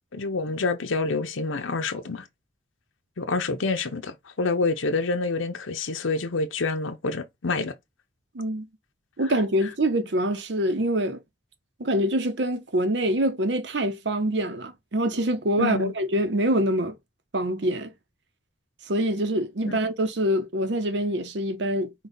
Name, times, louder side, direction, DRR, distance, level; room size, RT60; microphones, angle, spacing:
voice 1, 0.1-2.3 3.2-7.7 15.6-15.9 19.6-19.8, left 3 dB, 90° left, 0.8 m, -27 dB
voice 2, 8.3-8.7 9.2-11.2 11.8-17.0 17.3-17.9 18.9-21.9, right 1 dB, 65° right, 0.8 m, -25 dB
5.3 x 2.4 x 4.0 m
head